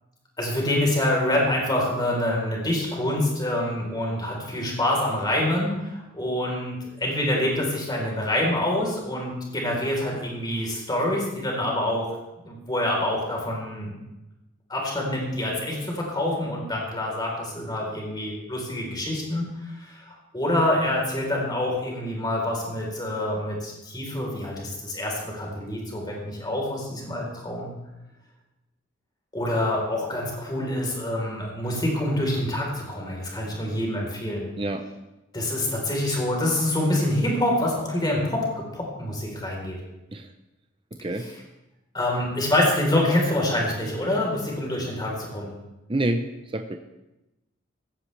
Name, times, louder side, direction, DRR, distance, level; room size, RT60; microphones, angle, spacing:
voice 1, 0.4-12.2 12.4-13.9 14.7-19.5 19.7-27.7 29.3-34.4 35.3-39.8 41.2-41.3 41.9-45.5, left 1 dB, 20° left, -1 dB, 4.0 m, -26 dB
voice 2, 34.6-34.9 40.1-40.3 40.9-41.3 45.9-46.3 46.5-46.8, right 1 dB, 25° right, 6 dB, 0.7 m, -27 dB
16.5 x 15.0 x 3.4 m, 0.97 s
head